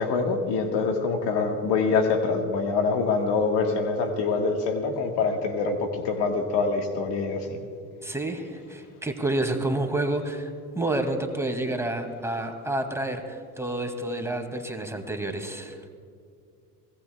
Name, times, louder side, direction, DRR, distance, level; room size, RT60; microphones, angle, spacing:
voice 1, 0.0-7.6, left 4 dB, 70° left, 4 dB, 1.7 m, -25 dB
voice 2, 8.0-15.8, right 1 dB, 5° right, 4 dB, 2.3 m, -29 dB
24.0 x 18.5 x 2.3 m, 2.3 s
hypercardioid pair, 65°, 43 cm